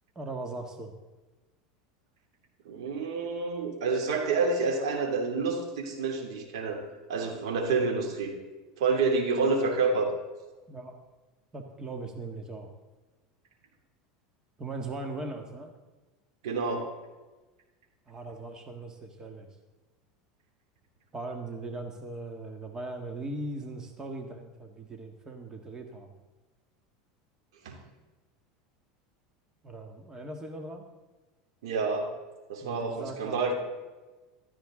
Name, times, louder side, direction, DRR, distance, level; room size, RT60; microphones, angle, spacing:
voice 1, 0.2-0.9 10.7-11.0 11.5-12.7 14.6-15.7 18.1-19.5 21.1-26.1 29.6-30.9 32.6-33.5, right 2 dB, 20° right, 4 dB, 1.8 m, -39 dB
voice 2, 2.6-6.8 7.1-8.3 8.8-10.1 16.4-16.8 27.6-27.8 31.6-32.1 32.5-33.5, right 4 dB, 80° right, 3 dB, 2.8 m, -28 dB
16.0 x 13.0 x 3.8 m, 1.2 s
supercardioid pair, 115°, 3 cm